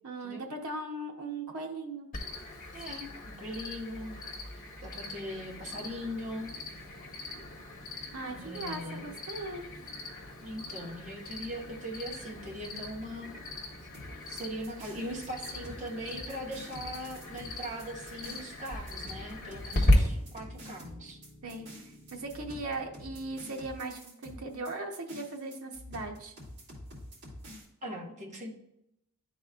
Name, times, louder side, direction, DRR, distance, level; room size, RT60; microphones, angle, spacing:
voice 1, 0.0-2.1 8.1-9.6 21.4-26.3, right 2 dB, 90° right, 1 dB, 0.9 m, -38 dB
Cricket, 2.1-19.9, left 1 dB, 40° left, 1.3 m, -37 dB
voice 2, 2.7-4.2 4.8-6.5 8.3-9.1 10.4-13.3 14.3-21.2 27.8-28.5, equal, 35° right, -2 dB, 1.3 m, -40 dB
sound 1, 5.0-23.6, equal, 15° left, 1.0 m, -55 dB
sound 2, 13.9-27.6, equal, 55° right, 2.5 m, -48 dB
11.5 x 4.1 x 2.4 m, 0.83 s
head